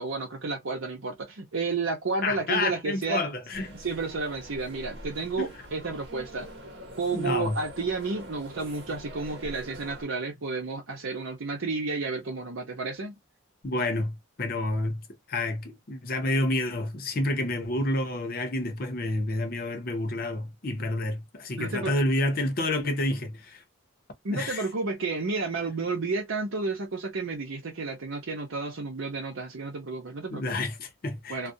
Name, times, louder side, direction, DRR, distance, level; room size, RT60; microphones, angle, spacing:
voice 1, 0.0-3.2 3.7-6.5 7.0-13.1 21.6-21.9 24.2-30.7 31.3-31.5, right 3 dB, 80° right, 0.7 m, -31 dB
voice 2, 2.2-3.7 5.4-5.5 7.1-7.6 13.6-15.0 15.3-23.6 24.3-24.6 30.3-31.5, left 2 dB, 45° left, 0.6 m, -29 dB
sound 1, 3.5-10.1, right 1 dB, 55° right, 1.0 m, -44 dB
2.4 x 2.1 x 2.6 m
head